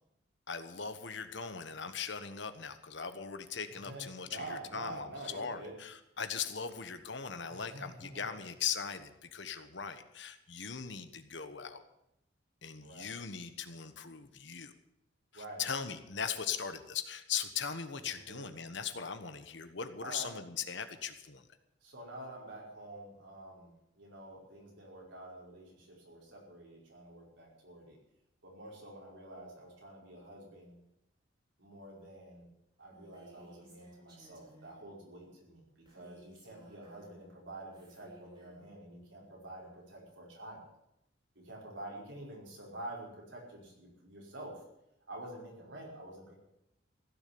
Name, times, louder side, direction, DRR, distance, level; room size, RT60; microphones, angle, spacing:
voice 1, 0.5-11.8 12.6-14.7 15.3-21.5, left 7 dB, 65° left, 9 dB, 1.3 m, -39 dB
voice 2, 3.7-5.7 7.4-8.4 12.8-13.1 15.3-15.6 18.1-18.5 20.0-20.4 21.8-23.7 24.0-28.0 28.4-30.8 31.6-32.4 32.8-40.6 41.4-44.6 45.1-46.3, right 1 dB, 75° right, -2 dB, 5.3 m, -48 dB
Female speech woman speaking, 32.9-34.8 35.9-37.3 37.7-38.7, equal, 25° right, 4.6 m, -59 dB
16.0 x 7.2 x 9.6 m, 0.84 s
head